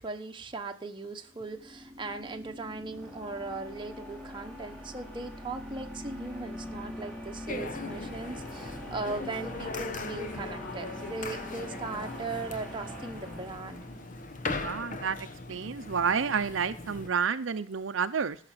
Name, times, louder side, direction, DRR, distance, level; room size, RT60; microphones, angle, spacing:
voice 1, 0.0-13.8, right 3 dB, 25° right, 4 dB, 1.2 m, -38 dB
sound 1, 1.3-14.3, equal, 5° left, 2.8 m, -43 dB
sound 2, 7.5-17.1, left 3 dB, 40° left, 1.1 m, -39 dB
voice 2, 14.5-15.2 15.5-18.4, right 6 dB, 75° right, 11 dB, 0.6 m, -30 dB
13.0 x 6.7 x 7.7 m, 0.43 s
head